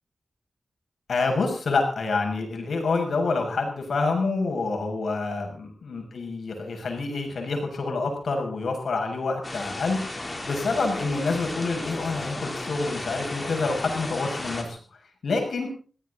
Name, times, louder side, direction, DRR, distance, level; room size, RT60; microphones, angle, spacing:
voice 1, 1.1-14.8 15.2-15.7, left 3 dB, 75° left, 3 dB, 6.6 m, -27 dB
sound 1, 9.4-14.6, left 2 dB, 25° left, 3.5 m, -34 dB
22.0 x 16.0 x 4.1 m, 0.40 s
wide cardioid pair, 130°, 0 cm